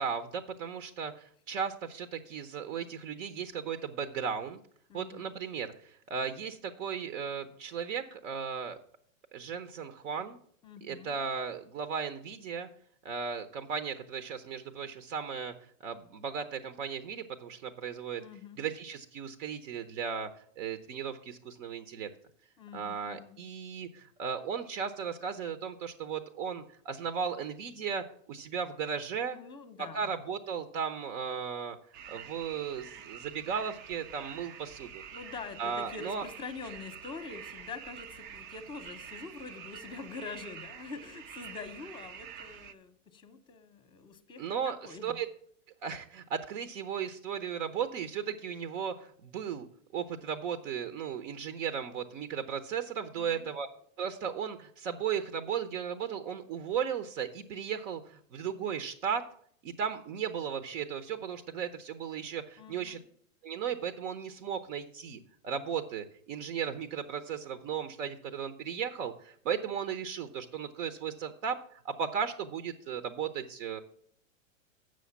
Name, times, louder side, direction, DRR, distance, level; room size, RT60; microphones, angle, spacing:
voice 1, 0.0-4.6 4.9-8.8 9.3-10.4 10.8-12.7 13.0-15.5 15.8-18.2 18.6-20.3 20.6-22.1 22.7-29.4 29.9-31.8 32.1-35.0 35.6-36.2 44.4-45.3 45.8-49.7 49.9-53.7 54.0-59.2 59.6-63.0 63.4-73.8, right 7 dB, 65° right, 11 dB, 0.9 m, -36 dB
voice 2, 4.9-5.3 10.6-11.2 18.2-18.6 22.6-23.4 29.3-30.1 35.1-45.2 53.1-53.5 62.6-63.0, left 5 dB, 10° left, 11 dB, 0.8 m, -45 dB
sound 1, 31.9-42.7, right 8 dB, 25° right, 0.3 m, -47 dB
7.6 x 6.4 x 7.0 m, 0.63 s
hypercardioid pair, 120°, 40 cm